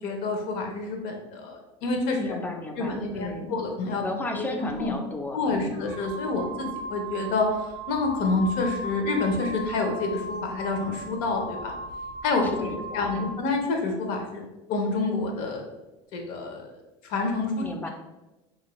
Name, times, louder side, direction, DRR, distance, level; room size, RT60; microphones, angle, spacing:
voice 1, 0.0-2.2 2.8-4.0 4.3-4.9 5.3-7.5 7.9-11.7 12.2-14.4 14.7-15.6 16.1-16.7 17.1-17.9, left 3 dB, 65° left, 3 dB, 0.7 m, -28 dB
voice 2, 2.2-3.6 4.0-5.8 12.4-13.4 17.6-17.9, left 2 dB, 10° left, 4 dB, 0.4 m, -34 dB
sound 1, 4.7-4.9 5.7-13.4, right 1 dB, 65° right, 0.4 m, -37 dB
2.7 x 2.5 x 3.0 m, 1.0 s
supercardioid pair, 110°, 15 cm